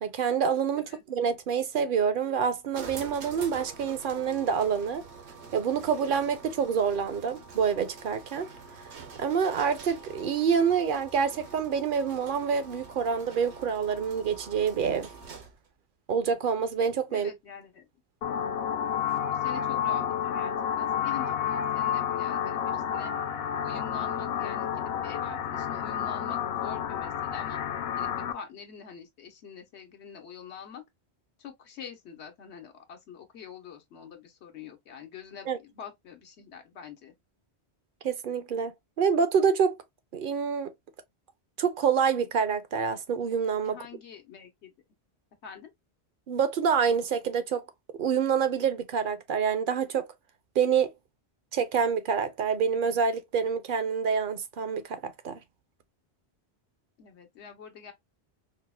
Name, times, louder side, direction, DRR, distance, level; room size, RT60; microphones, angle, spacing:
voice 1, 0.0-5.0 5.5-8.5 9.2-15.1 16.1-17.3 35.5-35.6 38.0-39.8 40.1-40.7 41.6-43.8 46.3-47.6 48.0-50.1 50.6-50.9 51.5-55.4, right 6 dB, 60° right, 0.7 m, -27 dB
sound 1, 2.7-15.7, right 4 dB, 80° right, 1.1 m, -46 dB
voice 2, 17.1-17.9 19.3-23.1 23.6-27.6 28.0-30.8 31.4-37.1 43.6-44.7 45.4-45.7 57.0-57.9, left 7 dB, 85° left, 1.1 m, -45 dB
sound 2, 18.2-28.3, left 9 dB, 65° left, 0.7 m, -30 dB
4.7 x 2.1 x 2.2 m
omnidirectional pair, 1.1 m